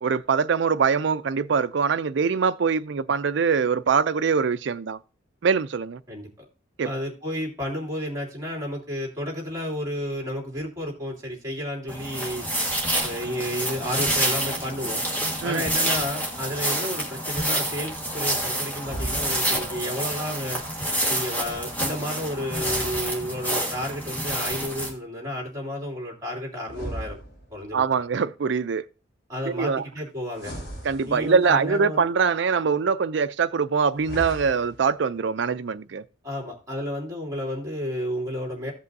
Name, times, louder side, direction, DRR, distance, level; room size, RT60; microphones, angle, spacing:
voice 1, 0.0-5.0 5.4-6.0 6.8-6.9 15.4-15.6 27.7-28.8 29.5-29.8 30.8-36.0, right 5 dB, 60° right, 0.4 m, -23 dB
voice 2, 6.8-12.5 13.0-15.0 15.4-20.6 21.1-27.2 27.5-27.8 29.3-30.5 31.1-32.1 36.2-38.7, equal, 15° right, 2.7 m, -31 dB
sound 1, 11.9-24.9, right 1 dB, 10° left, 1.6 m, -28 dB
sound 2, 18.8-19.7 22.4-23.7 26.6-27.8 30.3-31.6 33.9-34.9, equal, 55° left, 4.0 m, -37 dB
16.0 x 5.4 x 2.7 m
head